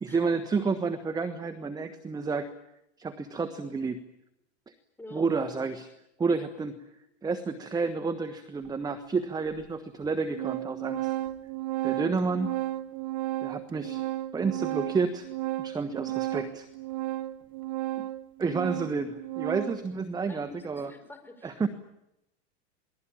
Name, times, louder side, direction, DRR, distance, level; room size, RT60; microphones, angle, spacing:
voice 1, 0.0-2.5 3.0-4.0 4.7-4.8 5.1-5.9 6.2-6.7 7.2-11.1 11.8-12.6 13.4-14.0 14.3-15.3 15.6-16.7 18.0-18.1 18.4-20.9 21.4-21.7, right 4 dB, 10° right, 10 dB, 1.4 m, -30 dB
Organ, 8.6-8.7 9.6-9.7 10.0-19.9, right 15 dB, 55° right, 2.4 m, -34 dB
voice 2, 20.2-21.7, left 2 dB, 5° left, 6 dB, 5.1 m, -47 dB
28.0 x 20.5 x 8.9 m, 0.87 s
supercardioid pair, 135°, 33 cm